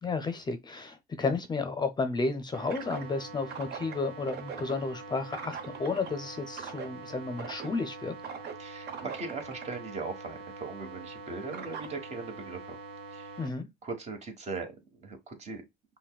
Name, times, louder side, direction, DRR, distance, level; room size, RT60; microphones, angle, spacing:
voice 1, 0.0-8.1 13.4-13.7, left 3 dB, 25° left, 0.5 m, -32 dB
sound 1, 2.5-13.5, right 5 dB, 90° right, 0.9 m, -42 dB
voice 2, 8.6-12.8 13.1-13.4 13.8-15.6, right 4 dB, 40° right, 1.2 m, -39 dB
5.7 x 2.2 x 2.2 m
cardioid pair, 110°, 17 cm